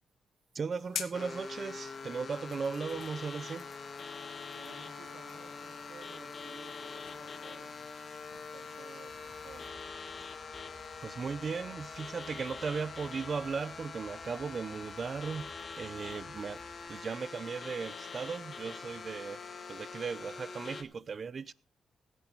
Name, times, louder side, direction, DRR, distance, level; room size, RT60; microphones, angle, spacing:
voice 1, 0.5-3.7 11.0-16.6 16.9-19.4 19.7-21.5, right 5 dB, 45° right, 0.7 m, -37 dB
sound 1, 0.7-9.7, left 9 dB, 85° left, 1.4 m, -49 dB
sound 2, 1.1-20.8, left 4 dB, 45° left, 1.8 m, -44 dB
voice 2, 4.5-8.1 8.3-9.9, right 6 dB, 75° right, 2.2 m, -55 dB
sound 3, 9.1-16.9, right 3 dB, 30° right, 2.0 m, -59 dB
17.0 x 10.0 x 4.1 m
cardioid pair, 100°, 0 cm